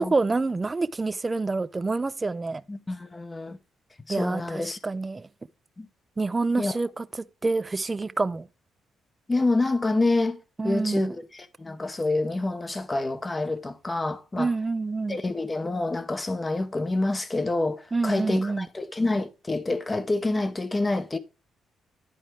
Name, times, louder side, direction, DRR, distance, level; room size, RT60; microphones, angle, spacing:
voice 1, 0.0-2.6 4.1-5.3 6.2-7.1 7.4-8.5 10.6-11.1 14.4-15.2 17.9-18.7, right 3 dB, 25° right, 0.5 m, -27 dB
voice 2, 2.7-3.6 4.1-4.8 5.8-5.9 6.6-6.8 9.3-14.5 15.1-21.2, left 2 dB, 20° left, 0.8 m, -27 dB
10.5 x 4.5 x 4.4 m
cardioid pair, 90°, 0 cm